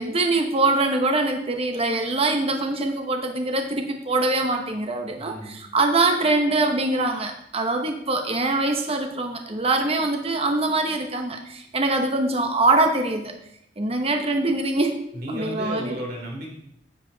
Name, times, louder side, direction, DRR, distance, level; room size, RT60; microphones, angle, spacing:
voice 1, 0.0-13.3 13.8-14.9 15.3-16.0, right 2 dB, 35° right, 4 dB, 0.9 m, -23 dB
voice 2, 5.2-5.6 15.1-16.6, equal, 60° right, 0 dB, 2.9 m, -33 dB
10.5 x 7.3 x 3.9 m, 0.75 s
head